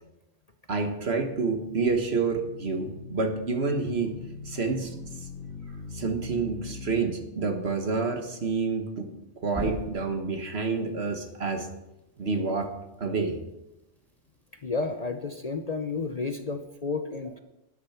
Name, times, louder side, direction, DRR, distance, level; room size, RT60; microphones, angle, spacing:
voice 1, 0.7-4.2 4.5-4.9 5.9-9.1 9.4-11.7 12.2-12.7 13.0-13.4, right 4 dB, 60° right, 5 dB, 1.7 m, -28 dB
sound 1, 1.2-7.0 9.5-10.3, left 3 dB, ahead, 2.5 m, -40 dB
voice 2, 14.5-17.4, left 4 dB, 40° left, 7 dB, 0.7 m, -31 dB
12.5 x 10.5 x 5.8 m, 0.93 s
omnidirectional pair, 1.3 m